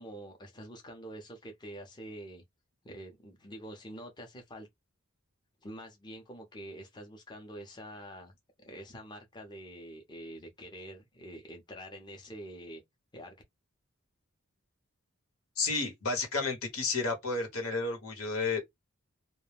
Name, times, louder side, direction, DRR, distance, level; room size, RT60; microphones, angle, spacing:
voice 1, 0.0-2.4 2.8-4.7 5.6-12.8 13.1-13.3, equal, 20° left, 0.5 m, -46 dB
voice 2, 15.6-18.6, left 3 dB, 80° left, 1.1 m, -31 dB
2.3 x 2.1 x 3.2 m
head